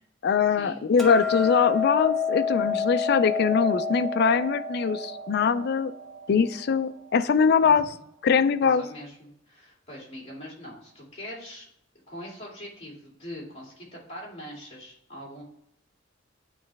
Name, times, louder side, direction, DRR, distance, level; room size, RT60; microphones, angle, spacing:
voice 1, 0.2-5.9 6.3-7.9 8.2-8.8, left 6 dB, 55° left, 11 dB, 0.4 m, -22 dB
Hammer, 1.0-7.2, left 5 dB, ahead, 1.0 m, -29 dB
voice 2, 7.6-8.0 8.6-11.7 12.1-15.4, equal, 35° left, -4 dB, 2.4 m, -42 dB
9.3 x 3.1 x 3.4 m, 0.75 s
head